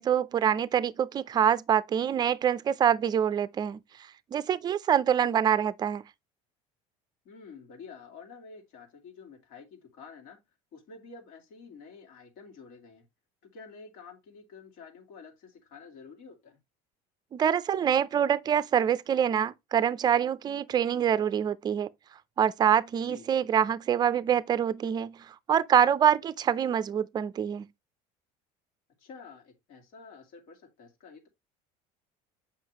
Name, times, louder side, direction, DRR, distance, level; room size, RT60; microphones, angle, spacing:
voice 1, 0.0-3.8 4.3-6.0 17.3-21.9 22.4-25.2 25.5-27.6, right 9 dB, 25° right, 0.5 m, -25 dB
voice 2, 7.2-10.4 10.7-13.1 13.4-16.6 23.0-23.3 29.0-31.3, left 5 dB, 65° left, 2.6 m, -49 dB
7.6 x 5.6 x 3.0 m
cardioid pair, 145°, 15 cm